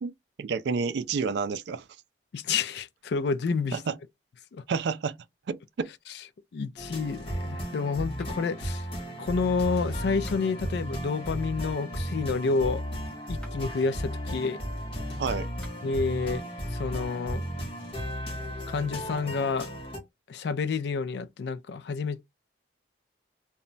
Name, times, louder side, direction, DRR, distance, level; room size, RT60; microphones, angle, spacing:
voice 1, 0.4-1.8 3.7-3.9 4.7-5.2 5.5-5.9 15.2-15.5, right 5 dB, 60° right, 0.3 m, -29 dB
voice 2, 2.3-3.8 4.5-4.6 6.1-6.2 6.5-8.9 9.2-12.8 13.3-14.6 15.8-16.4 16.7-17.4 18.7-19.7 20.3-22.2, left 4 dB, 60° left, 0.3 m, -29 dB
sound 1, 6.8-20.0, equal, 30° left, 0.8 m, -35 dB
sound 2, 13.3-13.8 15.5-16.0, right 1 dB, 5° left, 0.8 m, -53 dB
2.2 x 2.0 x 3.8 m
head